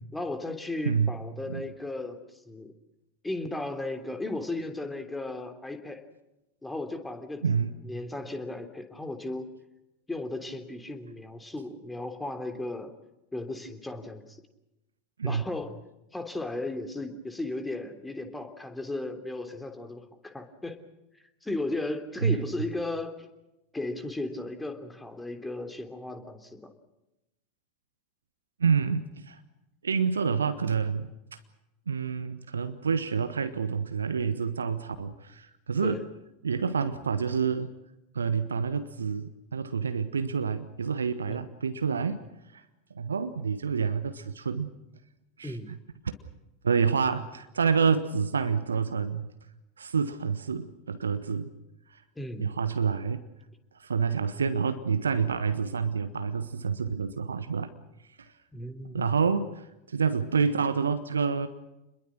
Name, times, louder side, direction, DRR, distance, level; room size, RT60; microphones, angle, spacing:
voice 1, 0.1-2.7 3.2-6.0 6.6-9.5 10.1-12.9 13.3-14.4 15.2-15.8 16.1-20.8 21.4-23.3 23.7-26.7 35.8-36.0 41.3-41.5 45.4-45.8 52.1-52.5 58.5-59.2, left 2 dB, 10° left, 8 dB, 3.3 m, -35 dB
voice 2, 28.6-29.4 29.8-31.4 31.9-36.0 36.4-37.7 38.1-42.2 42.5-42.6 42.9-44.7 45.4-45.6 46.0-46.2 46.6-49.3 49.8-51.5 51.9-52.0 52.4-53.2 53.8-57.7 58.2-58.3 58.9-61.5, right 6 dB, 75° right, 11 dB, 1.3 m, -28 dB
29.0 x 22.0 x 6.2 m, 0.93 s
figure-of-eight pair, 85°, 0 cm